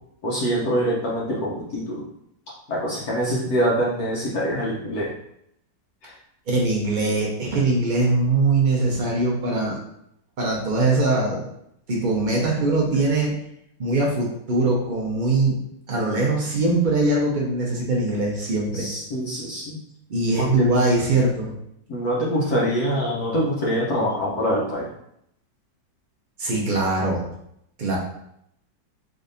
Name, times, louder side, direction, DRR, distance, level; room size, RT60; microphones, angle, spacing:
voice 1, 0.2-2.1 2.7-5.1 6.0-6.1 18.7-19.8 20.4-20.7 21.9-24.9, equal, 65° left, -5 dB, 1.2 m, -24 dB
voice 2, 6.5-9.8 10.4-11.4 11.9-13.3 13.8-15.6 15.9-18.9 20.1-21.6 26.4-27.3 27.8-28.0, right 2 dB, 75° right, -3 dB, 0.4 m, -22 dB
3.7 x 3.2 x 2.6 m, 0.74 s
omnidirectional pair, 1.9 m